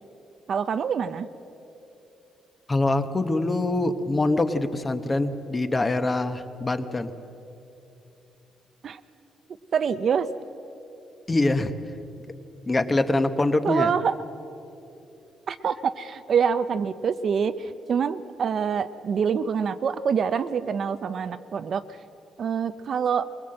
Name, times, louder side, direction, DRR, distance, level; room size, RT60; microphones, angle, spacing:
voice 1, 0.5-1.3 8.8-9.0 9.7-10.3 13.6-14.2 15.5-21.8 22.4-23.3, right 7 dB, 40° right, 12 dB, 0.6 m, -25 dB
voice 2, 2.7-7.1 11.3-11.7 12.7-13.9, left 2 dB, 15° left, 9 dB, 1.0 m, -24 dB
22.5 x 21.5 x 7.7 m, 2.9 s
cardioid pair, 165°, 0 cm